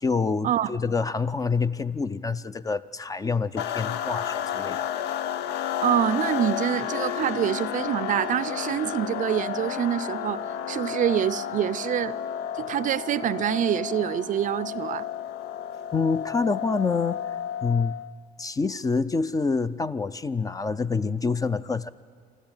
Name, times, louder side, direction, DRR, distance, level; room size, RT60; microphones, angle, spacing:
voice 1, 0.0-4.8 15.9-17.2 17.6-18.0 18.4-21.9, left 4 dB, 20° left, 0.4 m, -27 dB
sound 1, 3.6-18.1, left 9 dB, 80° left, 0.7 m, -32 dB
voice 2, 5.8-12.1 12.6-15.0, right 10 dB, 50° right, 0.5 m, -26 dB
24.5 x 13.0 x 8.9 m
cardioid pair, 110°, 17 cm